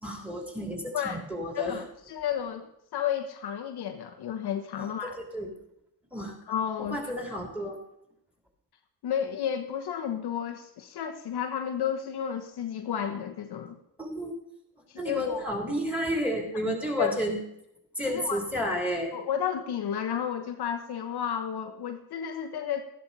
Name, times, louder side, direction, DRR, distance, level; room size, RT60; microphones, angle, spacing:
voice 1, 0.0-1.8 4.8-5.5 6.1-6.3 6.8-7.8 14.0-14.3 15.0-17.4 17.9-19.1, equal, 5° right, 2 dB, 3.1 m, -31 dB
voice 2, 1.5-5.2 6.5-7.1 9.0-13.8 14.9-15.4 17.0-17.2 18.1-18.4 19.1-22.8, left 9 dB, 55° left, 5 dB, 1.1 m, -32 dB
12.5 x 11.5 x 4.1 m, 0.78 s
supercardioid pair, 80°, 46 cm